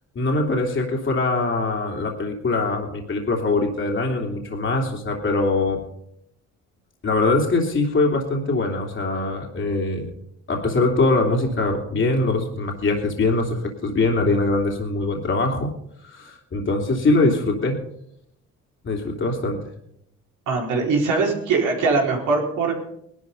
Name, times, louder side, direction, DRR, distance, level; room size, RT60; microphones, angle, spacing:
voice 1, 0.1-5.8 7.0-10.1 10.5-15.7 16.0-17.8 18.8-19.6, left 2 dB, 40° left, 0 dB, 3.0 m, -22 dB
voice 2, 20.5-22.9, right 4 dB, 85° right, 0 dB, 4.5 m, -21 dB
19.0 x 12.0 x 5.4 m, 0.74 s
cardioid pair, 90°, 30 cm